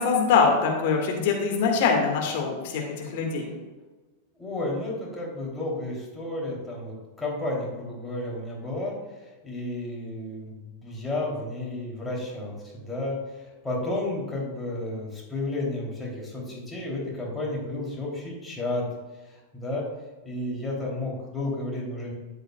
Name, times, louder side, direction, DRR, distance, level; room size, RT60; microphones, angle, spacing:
voice 1, 0.0-3.5, left 5 dB, 50° left, 1 dB, 1.8 m, -23 dB
voice 2, 4.4-8.9 9.4-18.8 19.3-19.8 20.2-22.1, left 2 dB, 10° left, -4 dB, 3.0 m, -32 dB
12.5 x 8.0 x 2.3 m, 1.2 s
figure-of-eight pair, 90°, 0 cm